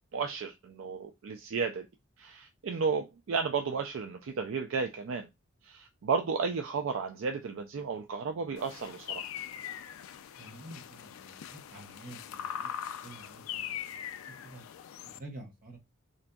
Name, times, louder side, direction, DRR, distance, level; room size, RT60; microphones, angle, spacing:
voice 1, 0.1-1.9 2.2-5.3 5.6-9.3, right 5 dB, 70° right, 0.4 m, -33 dB
sound 1, 8.6-15.2, left 9 dB, 85° left, 0.3 m, -41 dB
voice 2, 10.4-12.7 13.0-14.0 14.3-14.6 15.2-15.8, right 2 dB, 45° right, 0.9 m, -49 dB
3.9 x 2.5 x 2.2 m
head